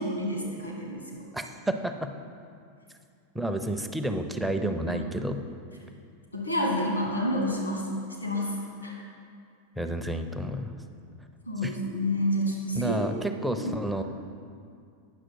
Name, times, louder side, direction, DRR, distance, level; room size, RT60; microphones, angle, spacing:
voice 1, 0.0-1.2 4.9-5.0 6.3-7.9 8.2-8.5 8.8-8.9 11.5-13.1 13.6-13.7, equal, 90° left, -1 dB, 1.7 m, -29 dB
voice 2, 3.3-5.4 9.8-10.7 11.6-11.7 12.7-14.0, right 1 dB, 5° right, 6 dB, 0.5 m, -30 dB
9.0 x 6.2 x 4.5 m, 2.3 s
figure-of-eight pair, 90°, 0 cm